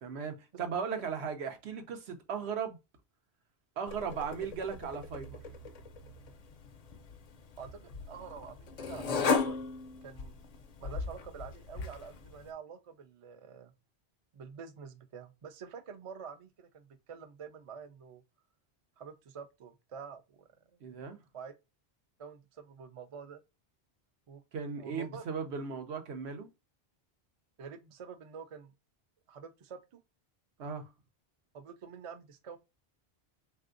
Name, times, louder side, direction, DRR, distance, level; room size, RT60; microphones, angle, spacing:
voice 1, 0.0-2.8 3.8-5.4 20.8-21.2 24.5-26.5 30.6-30.9, right 6 dB, 85° right, 1.0 m, -37 dB
sound 1, 3.9-12.5, left 5 dB, 55° left, 0.4 m, -37 dB
voice 2, 8.1-9.6 10.0-10.3 10.8-13.7 14.3-18.2 19.0-20.8 21.3-21.5 22.2-23.4 24.3-24.4 24.8-25.2 27.6-28.7 29.3-30.0 31.5-32.6, right 6 dB, 50° right, 0.4 m, -47 dB
3.4 x 2.6 x 2.4 m
omnidirectional pair, 1.1 m